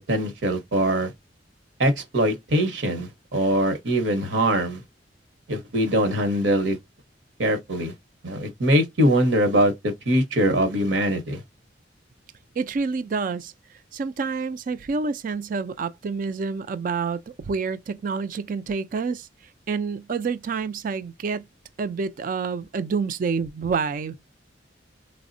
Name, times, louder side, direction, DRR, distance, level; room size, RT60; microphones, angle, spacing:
voice 1, 0.1-1.1 1.8-4.8 5.5-6.8 7.4-7.9 8.2-11.4, right 1 dB, 75° right, 0.9 m, -22 dB
voice 2, 12.6-13.5 13.9-19.3 19.7-21.5 21.8-24.2, right 5 dB, 45° right, 0.3 m, -28 dB
3.5 x 2.0 x 2.5 m
head